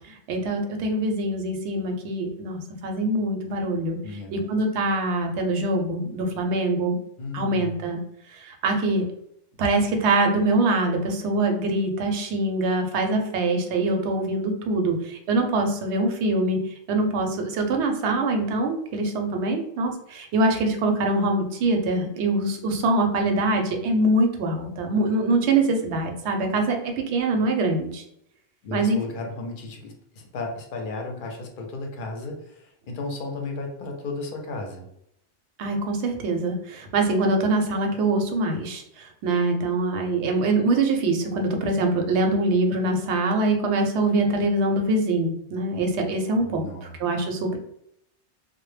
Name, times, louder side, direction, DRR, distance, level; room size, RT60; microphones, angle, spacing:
voice 1, 0.3-4.0 4.3-7.0 7.3-8.0 8.4-9.0 9.6-16.6 16.9-28.0 28.7-29.0 35.6-47.6, right 2 dB, 75° right, 3 dB, 0.8 m, -24 dB
voice 2, 4.0-4.4 7.2-7.7 28.6-32.4 32.9-34.8 46.4-46.9, left 3 dB, 55° left, 2 dB, 0.6 m, -34 dB
2.1 x 2.0 x 3.1 m, 0.76 s
omnidirectional pair, 1.2 m